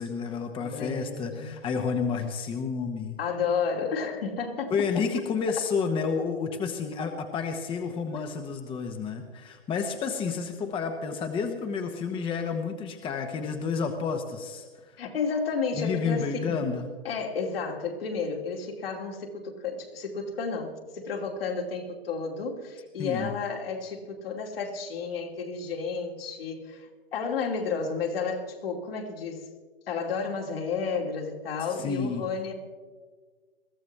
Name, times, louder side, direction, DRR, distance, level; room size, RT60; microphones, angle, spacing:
voice 1, 0.0-3.2 4.7-14.9 15.7-16.9 23.0-23.3 31.6-32.3, left 5 dB, 15° left, 5 dB, 1.1 m, -30 dB
voice 2, 0.6-1.5 3.2-5.0 15.0-16.6 17.0-29.4 29.9-32.5, left 5 dB, 70° left, 1 dB, 2.7 m, -32 dB
21.5 x 14.0 x 3.4 m, 1.5 s
hypercardioid pair, 125°, 30 cm